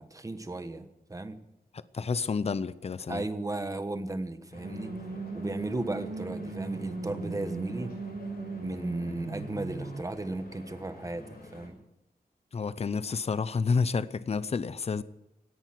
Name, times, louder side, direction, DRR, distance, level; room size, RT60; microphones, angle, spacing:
voice 1, 0.0-1.4 3.1-4.9 5.3-7.9 8.6-11.8, right 2 dB, 20° right, 1.2 m, -35 dB
voice 2, 1.9-3.2 12.5-15.0, left 5 dB, 40° left, 0.7 m, -29 dB
Stream / Boat Water vehicle, 4.5-11.7, left 2 dB, 80° left, 6.3 m, -48 dB
sound 1, 4.6-10.0, right 3 dB, 80° right, 2.1 m, -38 dB
17.5 x 10.5 x 7.7 m
wide cardioid pair, 155°, 16 cm